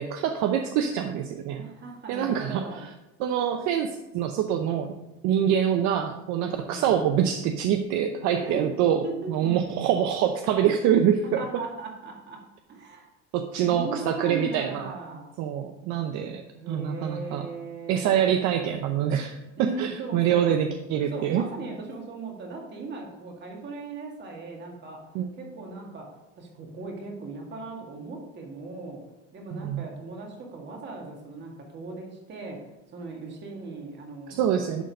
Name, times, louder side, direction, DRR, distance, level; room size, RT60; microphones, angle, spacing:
voice 1, 0.0-1.6 2.1-2.9 3.2-4.9 5.2-11.4 13.3-14.9 15.4-17.5 17.9-21.4 25.1-25.3 29.5-29.8 34.3-34.8, right 9 dB, 60° right, 6 dB, 0.7 m, -25 dB
voice 2, 1.6-2.8 6.3-7.0 8.4-8.7 9.0-9.7 11.4-13.1 13.6-15.3 16.5-18.2 19.6-20.5 21.1-29.0 29.3-32.7 32.9-34.4, right 3 dB, 35° right, 1 dB, 2.0 m, -38 dB
11.0 x 3.9 x 5.3 m, 0.98 s
cardioid pair, 140°, 31 cm